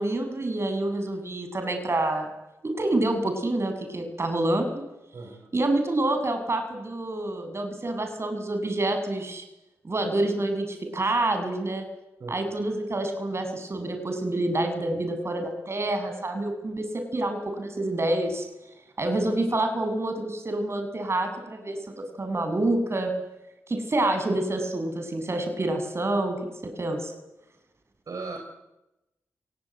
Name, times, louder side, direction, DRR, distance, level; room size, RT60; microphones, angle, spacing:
voice 1, 0.0-2.3 2.6-4.8 5.5-9.4 9.8-11.8 12.3-18.4 19.0-23.1 23.7-27.1, right 2 dB, 40° right, 6 dB, 7.7 m, -27 dB
voice 2, 5.1-5.5 12.2-12.5 28.1-28.4, right 3 dB, 60° right, 3 dB, 5.3 m, -37 dB
23.0 x 20.0 x 9.4 m, 0.92 s
cardioid pair, 50°, 7 cm